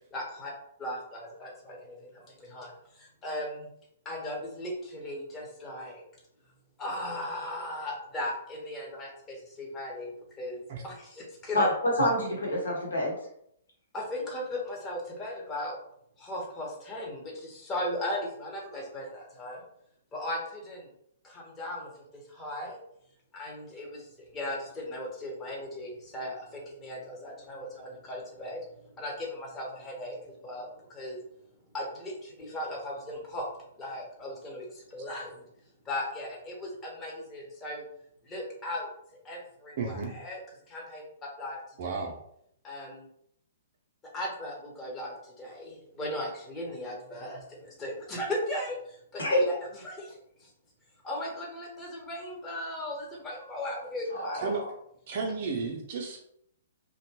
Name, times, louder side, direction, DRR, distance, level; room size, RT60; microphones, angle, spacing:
voice 1, 0.1-0.5 0.8-3.7 4.0-6.0 6.8-10.1 10.4-11.7 13.9-15.8 16.2-19.6 20.1-20.9 21.2-22.8 23.3-31.2 31.7-33.5 33.8-35.4 35.8-37.8 38.2-38.9 39.2-40.4 40.7-41.0 41.4-41.6 41.8-42.1 42.6-43.1 44.1-49.4 49.8-50.5 51.0-54.5, left 1 dB, 20° left, -2 dB, 0.9 m, -37 dB
voice 2, 11.5-13.2 49.2-49.4 54.1-54.7, left 1 dB, 75° left, -2 dB, 1.1 m, -27 dB
voice 3, 39.8-40.1 41.8-42.2 54.4-54.6 55.1-56.3, right 4 dB, 45° right, 0 dB, 0.5 m, -33 dB
2.8 x 2.2 x 2.8 m, 0.71 s
figure-of-eight pair, 115°, 0 cm